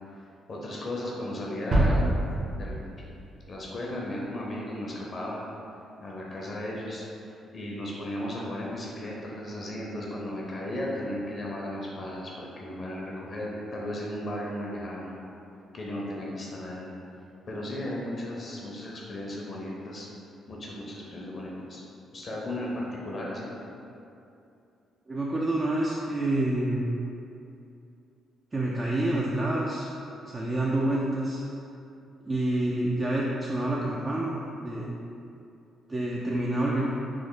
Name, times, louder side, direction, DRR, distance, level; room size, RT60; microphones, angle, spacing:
voice 1, 0.5-2.1 2.6-2.9 3.5-5.4 6.0-15.1 15.7-16.9 17.5-20.1 20.5-21.8 22.1-23.6, left 1 dB, 40° left, -3 dB, 0.5 m, -35 dB
sound 1, 1.7-3.8, right 1 dB, 50° right, 0.7 m, -26 dB
voice 2, 25.1-26.9 28.5-29.9 30.3-31.4 32.2-34.9 35.9-36.9, right 1 dB, 25° right, -4 dB, 0.3 m, -28 dB
3.1 x 2.0 x 3.7 m, 2.7 s
cardioid pair, 90°, 0 cm